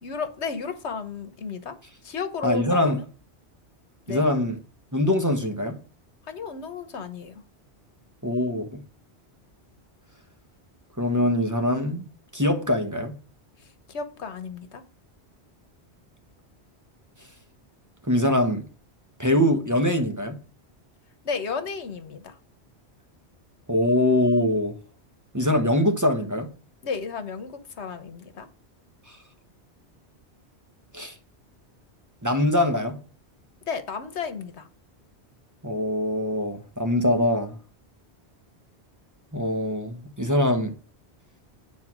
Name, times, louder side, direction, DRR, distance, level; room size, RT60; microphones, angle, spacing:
voice 1, 0.0-1.8 2.0-3.0 4.1-4.3 6.2-7.4 13.6-14.8 21.2-22.4 26.8-28.5 33.6-34.7, left 5 dB, 80° left, 1.4 m, -33 dB
voice 2, 2.4-3.0 4.1-4.6 4.9-5.8 8.2-8.8 11.0-13.2 18.1-18.6 19.2-20.4 23.7-24.8 25.3-26.5 29.1-29.2 30.9-31.1 32.2-33.0 35.6-37.6 39.3-40.7, left 1 dB, 15° right, 1.3 m, -23 dB
9.4 x 4.3 x 6.1 m
omnidirectional pair, 1.1 m